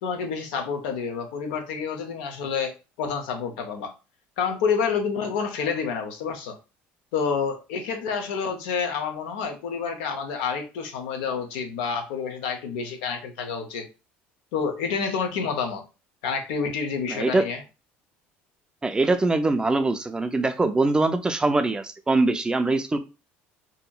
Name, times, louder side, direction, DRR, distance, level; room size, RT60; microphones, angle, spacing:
voice 1, 0.0-2.7 3.0-3.9 4.4-6.6 7.1-13.9 14.5-15.8 16.2-17.6, left 6 dB, 90° left, 5 dB, 0.6 m, -28 dB
voice 2, 17.1-17.5 18.8-23.0, right 2 dB, 15° right, 9 dB, 0.3 m, -23 dB
2.8 x 2.6 x 2.2 m, 0.30 s
supercardioid pair, 95°, 5 cm